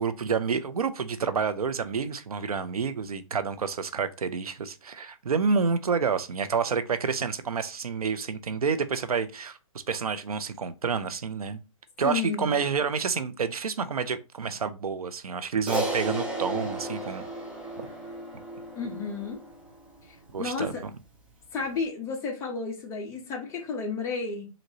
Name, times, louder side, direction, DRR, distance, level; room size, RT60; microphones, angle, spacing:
voice 1, 0.0-9.6 9.9-11.6 12.0-17.2 17.8-17.9 20.3-20.8, right 5 dB, 90° right, 0.7 m, -29 dB
voice 2, 12.0-12.6 18.8-19.4 20.4-20.8 21.5-24.5, left 5 dB, 15° left, 1.2 m, -32 dB
Crash cymbal, 15.7-20.2, right 1 dB, 5° right, 0.7 m, -34 dB
5.2 x 2.9 x 2.9 m
hypercardioid pair, 150°, 18 cm